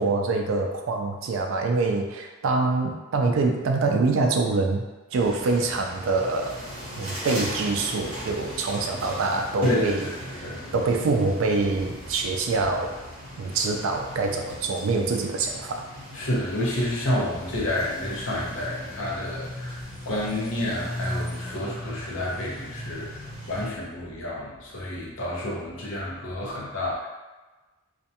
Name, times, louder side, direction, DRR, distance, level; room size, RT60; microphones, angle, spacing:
voice 1, 0.0-4.8 5.1-6.6 7.0-13.0 13.4-15.9, right 3 dB, 70° right, 3 dB, 0.3 m, -25 dB
sound 1, 5.1-23.7, equal, 30° right, 1.0 m, -38 dB
voice 2, 9.6-10.7 16.1-23.1 23.5-27.1, left 1 dB, 70° left, -4 dB, 0.7 m, -29 dB
2.5 x 2.2 x 2.7 m, 1.2 s
head